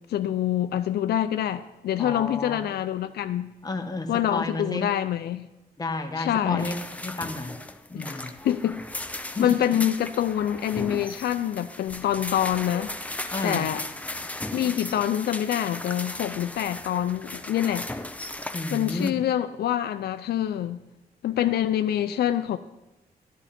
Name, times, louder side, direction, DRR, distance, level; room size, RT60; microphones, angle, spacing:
voice 1, 0.1-3.5 4.1-5.5 6.2-6.7 7.9-8.8 9.4-12.9 13.4-13.8 14.5-17.9 18.7-20.8 21.2-22.6, left 11 dB, 85° left, 0.5 m, -26 dB
voice 2, 2.0-2.6 3.6-4.9 5.8-7.5 7.9-8.3 9.3-9.9 13.3-13.7 18.5-19.2, left 2 dB, 25° left, 1.4 m, -31 dB
sound 1, 6.6-19.1, left 1 dB, 10° left, 0.6 m, -37 dB
12.0 x 11.0 x 4.3 m
cardioid pair, 100°, 16 cm